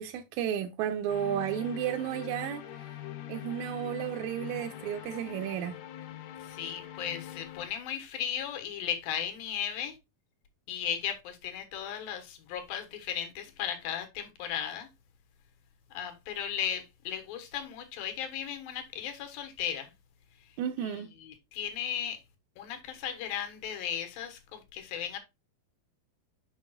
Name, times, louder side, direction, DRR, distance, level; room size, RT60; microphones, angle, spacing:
voice 1, 0.0-2.6 3.3-5.7 20.6-21.1, right 9 dB, 75° right, 1.8 m, -32 dB
sound 1, 1.1-7.7, left 12 dB, 70° left, 2.3 m, -43 dB
voice 2, 6.4-10.0 10.7-14.9 15.9-19.9 20.5-20.6 20.8-22.2 22.6-25.2, left 9 dB, 90° left, 3.1 m, -36 dB
7.1 x 6.2 x 2.3 m
omnidirectional pair, 4.0 m